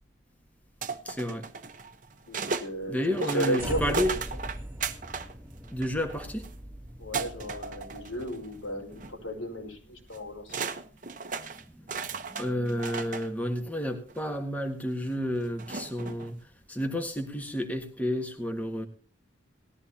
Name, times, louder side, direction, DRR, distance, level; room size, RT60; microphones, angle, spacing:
sound 1, 0.8-2.7 3.1-5.3 5.6-6.5 7.1-8.5 8.9-9.1 10.1-10.2 10.5-13.3 14.1-14.2 15.6-16.3, right 5 dB, 40° right, 1.0 m, -35 dB
voice 1, 1.0-1.5 2.9-4.1 5.7-6.5 11.3-18.9, equal, 5° left, 1.5 m, -31 dB
voice 2, 2.3-4.2 7.0-10.6, right 1 dB, 90° left, 5.1 m, -34 dB
sound 2, 3.6-9.9, equal, 15° right, 2.5 m, -41 dB
19.0 x 13.5 x 2.9 m
head